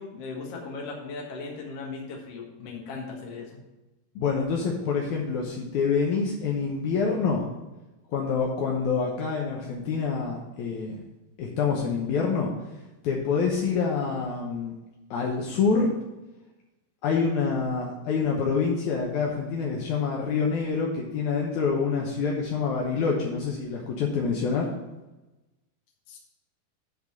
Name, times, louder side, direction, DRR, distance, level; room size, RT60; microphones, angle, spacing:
voice 1, 0.0-3.6 26.1-26.2, left 4 dB, 55° left, -2 dB, 1.8 m, -38 dB
voice 2, 4.2-7.5 8.1-11.0 11.4-12.5 13.0-14.7 15.1-15.9 17.0-24.7, left 5 dB, 75° left, -1 dB, 1.7 m, -26 dB
10.5 x 4.0 x 7.2 m, 1.1 s
omnidirectional pair, 4.8 m